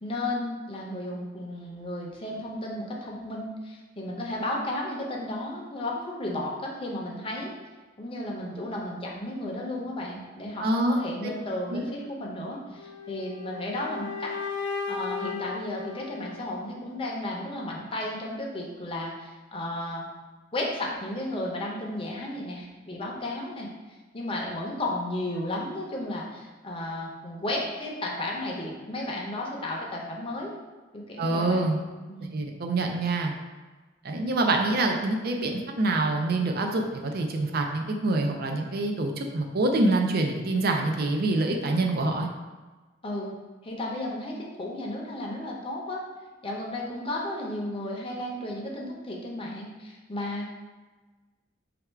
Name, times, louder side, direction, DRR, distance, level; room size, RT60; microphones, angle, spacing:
voice 1, 0.0-7.5 8.0-14.3 14.9-20.1 20.5-30.5 30.9-31.7 32.1-32.3 43.0-43.4 43.6-46.0 46.4-50.5, left 1 dB, 30° left, -2 dB, 0.7 m, -33 dB
voice 2, 10.6-11.0 11.7-11.8 31.2-31.8 32.3-33.3 34.0-42.3, right 2 dB, 55° right, 3 dB, 0.5 m, -26 dB
sound 1, 12.8-16.8, left 5 dB, 90° left, 0.5 m, -36 dB
3.4 x 2.4 x 4.4 m, 1.3 s
head